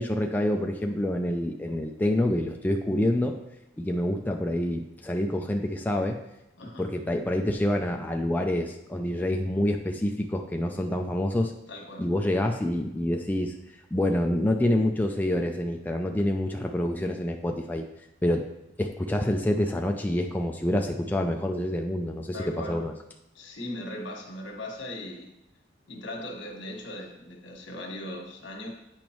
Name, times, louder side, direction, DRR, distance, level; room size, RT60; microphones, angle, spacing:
voice 1, 0.0-3.4 3.8-6.2 6.8-11.5 12.0-13.5 13.9-17.8 18.2-18.5 18.8-22.9, left 1 dB, 10° left, 2 dB, 0.4 m, -27 dB
voice 2, 6.6-6.9 11.7-12.0 22.3-22.8 23.3-25.3 25.9-28.7, left 1 dB, 75° left, 0 dB, 1.5 m, -38 dB
8.8 x 5.1 x 3.0 m, 0.89 s
head